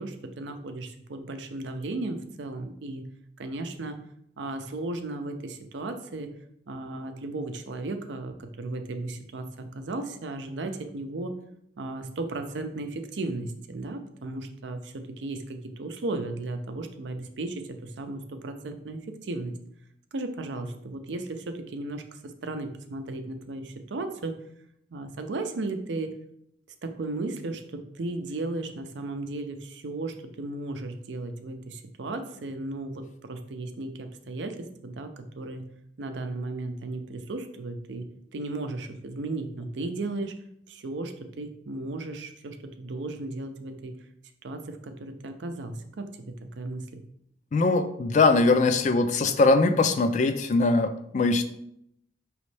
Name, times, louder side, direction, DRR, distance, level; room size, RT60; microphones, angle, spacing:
voice 1, 0.0-3.0 3.4-4.0 4.4-6.3 6.7-11.3 11.8-19.6 20.1-24.4 24.9-26.1 26.8-35.6 36.0-40.3 40.7-44.0 44.4-47.0, right 2 dB, 85° right, 7 dB, 0.5 m, -35 dB
voice 2, 47.5-51.4, left 3 dB, 40° left, 9 dB, 0.3 m, -21 dB
5.1 x 3.1 x 3.2 m, 0.74 s
head